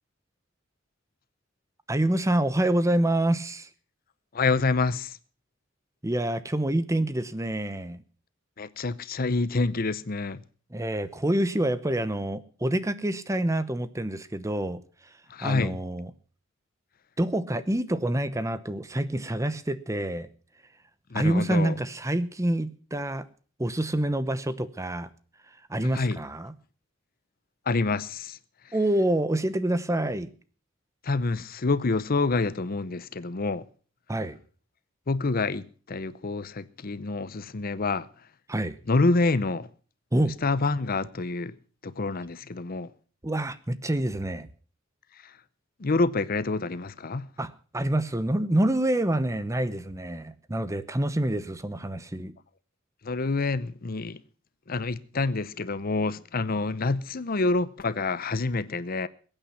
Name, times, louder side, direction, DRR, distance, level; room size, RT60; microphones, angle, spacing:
voice 1, 1.9-3.7 6.0-8.0 10.7-14.8 15.4-16.1 17.2-20.3 21.1-23.2 23.6-25.1 25.7-26.5 28.7-30.3 34.1-34.4 38.5-38.8 40.1-40.4 43.2-44.5 47.4-52.3, right 1 dB, 15° right, 0.8 m, -27 dB
voice 2, 4.3-5.2 8.6-10.4 15.3-15.8 21.1-21.8 25.9-26.2 27.7-28.4 31.0-33.6 35.1-38.1 38.9-39.7 40.4-41.5 41.8-42.9 45.8-47.3 53.0-54.2 54.7-59.1, left 3 dB, 45° left, 0.7 m, -27 dB
22.0 x 9.0 x 5.7 m
head